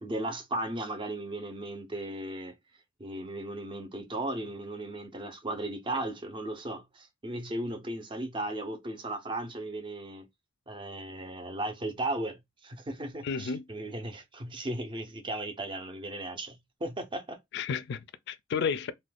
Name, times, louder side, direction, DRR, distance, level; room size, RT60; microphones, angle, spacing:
voice 1, 0.0-2.6 3.0-10.3 10.7-17.4, right 1 dB, 25° right, 0.5 m, -36 dB
voice 2, 13.2-13.6 17.5-18.9, left 6 dB, 60° left, 0.3 m, -32 dB
2.4 x 2.2 x 3.3 m
head